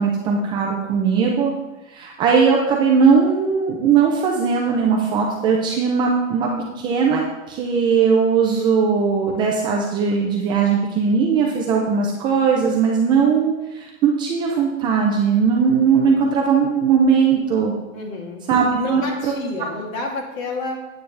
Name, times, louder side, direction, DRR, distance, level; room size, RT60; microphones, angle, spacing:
voice 1, 0.0-1.5 1.9-17.7 18.5-19.3, right 6 dB, 15° right, -1 dB, 0.3 m, -19 dB
voice 2, 17.9-18.4 18.8-20.8, left 3 dB, 75° left, 0 dB, 2.6 m, -29 dB
9.1 x 8.7 x 3.2 m, 1.0 s
hypercardioid pair, 140°, 41 cm